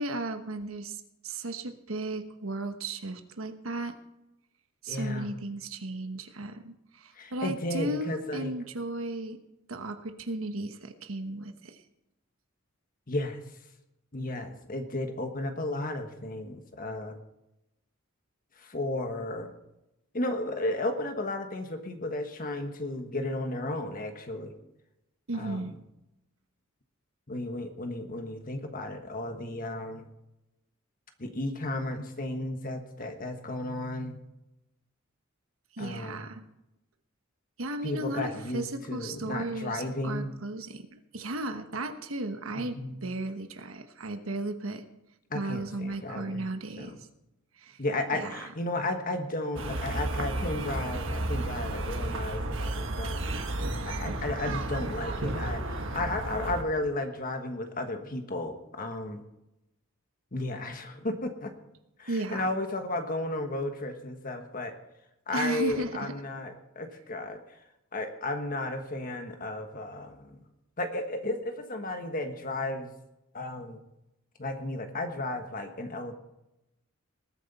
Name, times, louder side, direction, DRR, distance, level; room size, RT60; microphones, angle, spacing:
voice 1, 0.0-4.0 4.8-9.4 9.7-11.8 25.3-25.7 35.7-36.4 37.6-44.8 45.3-47.0 47.6-47.8 48.1-48.5 62.1-62.5 65.3-66.1, right 2 dB, 85° right, 7 dB, 1.2 m, -35 dB
voice 2, 4.9-5.3 7.1-8.5 13.1-13.4 14.1-17.2 18.5-19.5 20.1-24.5 25.3-25.7 27.3-30.1 31.2-34.2 35.8-36.3 37.8-40.3 42.6-43.0 45.3-46.5 46.8-46.9 47.8-53.4 53.9-59.2 60.3-61.5 62.0-64.7 65.3-67.6 67.9-70.4 70.8-72.9 73.3-73.8 74.4-76.1, left 2 dB, 45° left, 6 dB, 1.4 m, -34 dB
sound 1, 49.6-56.6, right 2 dB, 65° right, 1.5 m, -32 dB
20.0 x 9.3 x 4.2 m, 0.89 s
head